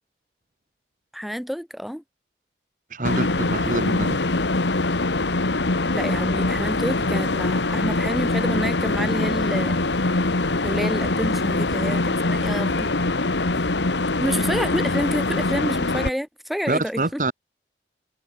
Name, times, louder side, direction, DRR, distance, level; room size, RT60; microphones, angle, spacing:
voice 1, 1.1-2.0 5.9-9.8 10.6-12.9 14.2-17.2, equal, ahead, 1.6 m, -28 dB
voice 2, 2.9-4.2 16.7-17.3, right 2 dB, 45° right, 1.4 m, -25 dB
sound 1, 3.0-16.1, left 2 dB, 80° left, 1.6 m, -23 dB
head